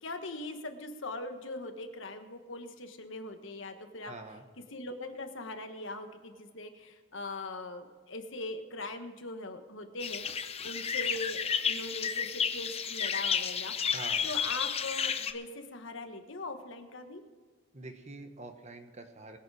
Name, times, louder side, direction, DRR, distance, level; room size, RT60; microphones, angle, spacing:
voice 1, 0.0-4.1 4.7-13.7 14.2-17.2, left 2 dB, 65° left, 6 dB, 1.4 m, -41 dB
voice 2, 4.0-4.4 13.9-14.3 17.7-19.4, right 2 dB, 35° right, 6 dB, 1.2 m, -45 dB
sound 1, 10.0-15.3, left 7 dB, 30° left, 0.7 m, -32 dB
21.0 x 8.2 x 4.9 m, 1.5 s
head